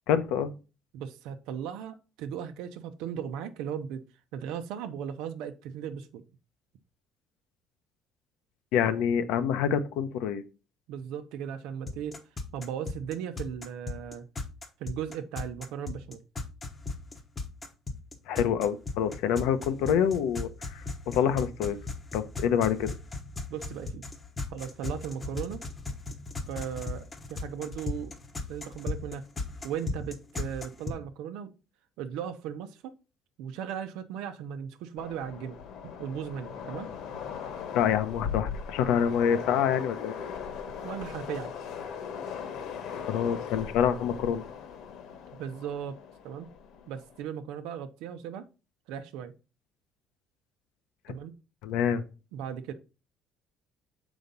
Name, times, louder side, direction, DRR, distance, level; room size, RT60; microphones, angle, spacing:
voice 1, 0.1-0.5 8.7-10.4 18.3-21.8 22.1-22.9 37.7-40.1 43.0-44.4 51.6-52.0, left 8 dB, 85° left, 0.9 m, -26 dB
voice 2, 0.9-4.0 4.3-6.2 10.9-12.2 12.5-14.3 14.8-16.2 23.5-24.0 24.5-25.6 26.5-27.0 27.3-28.1 28.5-29.2 29.6-31.5 32.0-32.9 33.4-35.6 36.0-36.9 40.8-41.5 45.3-46.5 46.9-48.5 48.9-49.3 51.1-51.3 52.3-52.7, right 8 dB, 85° right, 0.8 m, -37 dB
sound 1, 11.9-30.9, left 3 dB, 15° left, 0.9 m, -36 dB
Train, 35.0-47.2, left 7 dB, 55° left, 1.2 m, -39 dB
7.1 x 5.1 x 3.9 m
cardioid pair, 180°, 0 cm